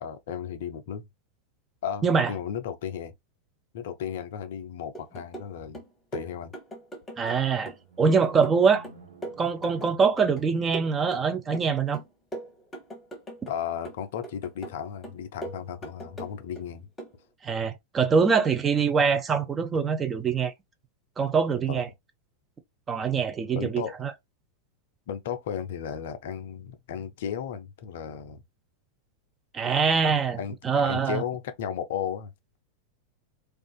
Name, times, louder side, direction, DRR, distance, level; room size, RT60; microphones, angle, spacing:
voice 1, 0.0-1.0 1.8-3.1 3.7-5.8 6.1-6.5 13.5-16.9 21.7-21.8 23.5-23.9 25.1-28.4 30.4-30.6 30.8-32.3, left 8 dB, 55° left, 0.4 m, -34 dB
sound 1, 4.9-5.5 5.7-7.4 7.7-10.5 10.7-11.7 11.9-13.6 13.8-14.8 15.0-16.7 17.0-17.2, right 2 dB, 15° left, 0.9 m, -40 dB
voice 2, 7.2-8.9 9.4-12.0 17.4-20.5 21.2-21.9 22.9-24.1 29.5-30.4 30.6-31.2, right 5 dB, 20° right, 0.5 m, -24 dB
sound 2, 7.8-10.8, right 4 dB, 65° right, 0.7 m, -52 dB
2.4 x 2.3 x 2.2 m
figure-of-eight pair, 90°, 0 cm